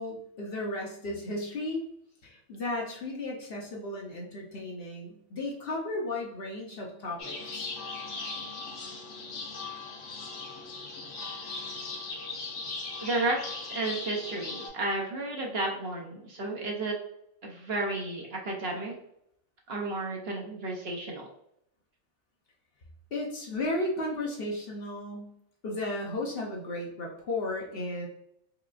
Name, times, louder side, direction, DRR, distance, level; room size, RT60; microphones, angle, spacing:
voice 1, 0.0-1.8 2.2-7.7 23.1-25.3 25.6-28.1, left 2 dB, 55° left, -1 dB, 0.8 m, -34 dB
sound 1, 7.2-14.7, left 3 dB, 75° left, 1.2 m, -38 dB
voice 2, 13.0-17.0 17.4-18.9 19.7-21.3, right 2 dB, 60° right, 0 dB, 0.8 m, -32 dB
4.8 x 2.3 x 2.4 m, 0.75 s
omnidirectional pair, 1.3 m